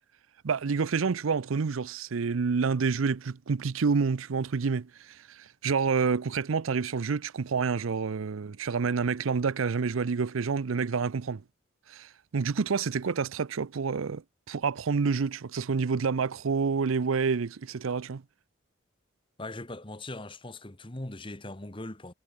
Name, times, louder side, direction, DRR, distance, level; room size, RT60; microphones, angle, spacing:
voice 1, 0.4-11.4 11.9-14.2 14.5-18.2, right 5 dB, 90° right, 0.6 m, -28 dB
voice 2, 19.4-22.1, left 2 dB, 25° left, 1.4 m, -40 dB
head